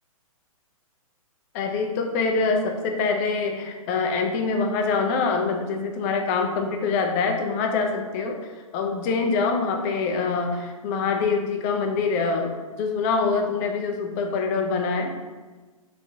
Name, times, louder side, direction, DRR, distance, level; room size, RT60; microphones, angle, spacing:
voice 1, 1.5-8.4 8.7-15.2, left 4 dB, 25° left, 4 dB, 0.5 m, -25 dB
4.1 x 3.6 x 2.6 m, 1.3 s
figure-of-eight pair, 120°, 18 cm